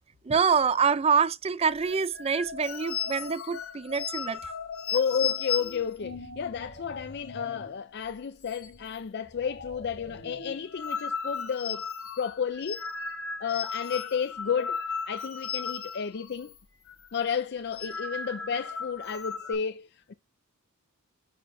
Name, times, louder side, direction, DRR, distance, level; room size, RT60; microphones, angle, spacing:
voice 1, 0.2-4.5, right 6 dB, 25° right, 0.4 m, -26 dB
sound 1, 1.8-7.7 8.0-8.1 8.4-9.0 9.3-16.6 16.9-17.1 17.6-19.5, left 6 dB, 80° left, 2.5 m, -36 dB
voice 2, 4.9-11.9 12.2-12.9 13.4-16.5 17.1-20.1, left 7 dB, 50° left, 0.4 m, -32 dB
10.0 x 4.3 x 2.6 m
head